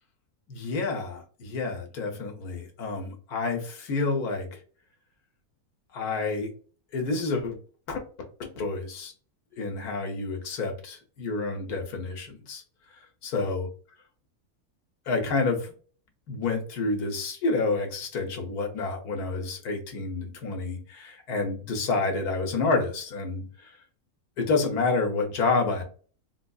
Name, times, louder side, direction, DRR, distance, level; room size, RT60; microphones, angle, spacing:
voice 1, 0.5-4.6 5.9-6.5 6.9-7.6 7.9-8.0 8.4-9.1 9.6-12.6 13.3-13.7 15.1-15.7 16.3-23.7 24.4-25.8, left 3 dB, 85° left, 3 dB, 1.4 m, -29 dB
3.6 x 2.6 x 2.3 m, 0.41 s
omnidirectional pair, 1.6 m